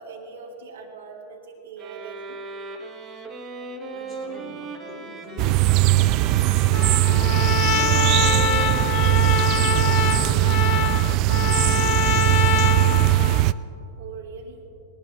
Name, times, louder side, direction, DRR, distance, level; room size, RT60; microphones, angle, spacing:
voice 1, 0.0-2.4 14.0-14.6, right 4 dB, 65° right, 0 dB, 2.5 m, -40 dB
sound 1, 1.8-11.0, right 3 dB, 20° right, 1.4 m, -38 dB
voice 2, 3.9-5.6 6.2-9.4 9.8-12.6, left 2 dB, 10° left, -6 dB, 4.2 m, -43 dB
sound 2, 5.4-13.5, right 17 dB, 40° right, 0.3 m, -19 dB
Trumpet, 6.7-13.5, left 12 dB, 45° left, 0.5 m, -25 dB
20.0 x 19.5 x 3.6 m, 2.9 s
figure-of-eight pair, 90°, 0 cm